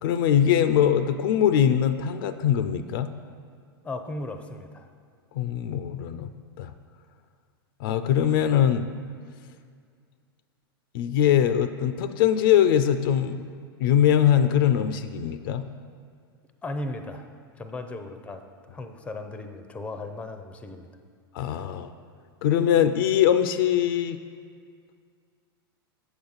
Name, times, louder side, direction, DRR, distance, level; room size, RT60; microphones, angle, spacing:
voice 1, 0.0-3.1 5.3-6.3 6.6-6.7 7.8-8.9 10.9-13.4 13.8-15.6 21.3-21.9 22.4-24.2, left 9 dB, 60° left, 11 dB, 0.4 m, -22 dB
voice 2, 3.8-4.8 16.6-17.2 17.6-18.4 18.7-20.9, left 2 dB, 10° left, 7 dB, 0.5 m, -36 dB
8.2 x 7.0 x 4.0 m, 2.1 s
hypercardioid pair, 110°, 13 cm